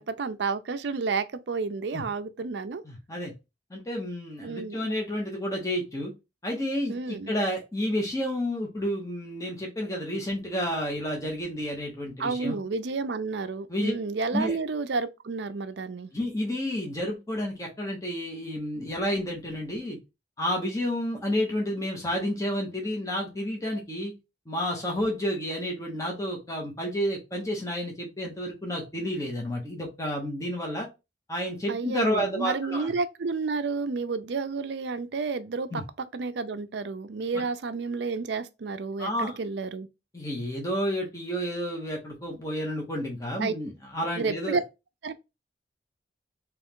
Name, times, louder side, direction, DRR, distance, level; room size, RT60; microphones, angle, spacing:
voice 1, 0.0-2.8 4.4-4.9 6.9-7.3 12.2-16.1 31.7-35.8 36.1-39.9 43.4-43.5 44.2-44.6 45.0-45.1, right 4 dB, 65° right, 0.5 m, -31 dB
voice 2, 2.8-3.3 3.7-6.1 6.4-12.6 13.7-13.9 14.3-14.6 16.1-20.0 20.4-24.1 24.5-30.9 31.3-32.9 35.7-35.8 39.0-39.4 40.1-44.6, equal, 15° left, 1.0 m, -30 dB
3.5 x 3.0 x 3.6 m
head